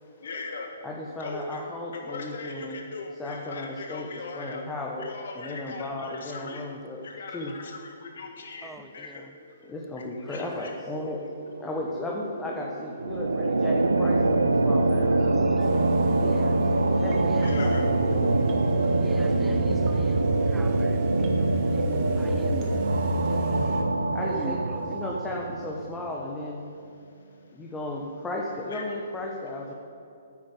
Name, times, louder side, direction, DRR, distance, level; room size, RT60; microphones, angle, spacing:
voice 1, 0.2-0.7 1.2-1.6 1.9-4.6 5.0-6.7 7.0-9.3 10.0-10.7 11.2-11.3 17.4-17.9 28.7-29.0, left 3 dB, 60° left, 1.6 m, -39 dB
voice 2, 0.8-2.8 3.2-5.1 5.3-7.0 7.3-7.5 9.6-11.2 11.6-15.2 17.0-18.3 24.1-26.7 27.5-29.7, left 2 dB, 10° left, 1.5 m, -35 dB
voice 3, 8.6-9.3 15.1-15.7 16.2-16.6 17.2-17.6 19.0-21.0 21.7-22.7 24.3-24.8, right 4 dB, 10° right, 0.6 m, -44 dB
sound 1, 10.8-18.4, right 3 dB, 55° right, 1.7 m, -42 dB
sound 2, 13.0-26.1, right 2 dB, 80° right, 0.8 m, -24 dB
sound 3, 15.6-23.8, equal, 30° right, 2.0 m, -35 dB
9.9 x 9.7 x 9.2 m
figure-of-eight pair, 130°, 0 cm